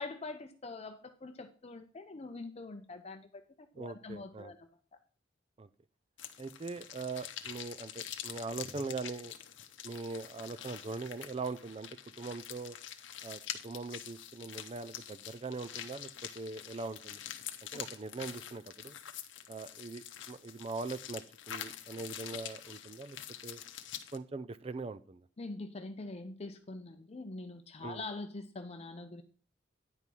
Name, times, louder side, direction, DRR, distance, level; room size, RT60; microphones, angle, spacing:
voice 1, 0.0-4.7 17.7-17.8 25.4-29.2, left 3 dB, 35° left, 7 dB, 0.6 m, -44 dB
voice 2, 3.7-4.5 5.6-5.7 6.4-9.3 9.8-11.9 12.2-12.8 13.2-16.1 16.3-17.2 17.6-19.0 19.5-23.2 23.4-23.6 24.1-25.3 27.8-28.0, right 3 dB, 30° right, 14 dB, 0.4 m, -41 dB
sound 1, 6.2-24.2, left 10 dB, 80° left, 0.8 m, -46 dB
9.8 x 4.6 x 5.3 m, 0.42 s
head